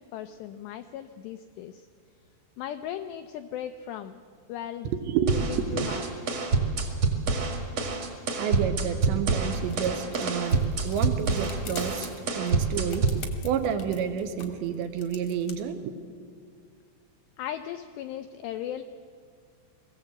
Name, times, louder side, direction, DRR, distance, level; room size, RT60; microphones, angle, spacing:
voice 1, 0.0-1.9 2.6-4.2 4.5-4.9 5.3-6.0 17.4-18.8, left 11 dB, 85° left, 8 dB, 2.4 m, -37 dB
voice 2, 4.9-6.5 8.4-12.1 12.3-15.9, right 8 dB, 75° right, 7 dB, 3.1 m, -30 dB
sound 1, 5.3-13.3, right 3 dB, 45° right, 2.2 m, -27 dB
sound 2, 9.3-15.6, left 5 dB, 60° left, 1.8 m, -46 dB
21.5 x 16.5 x 7.8 m, 2.1 s
omnidirectional pair, 5.6 m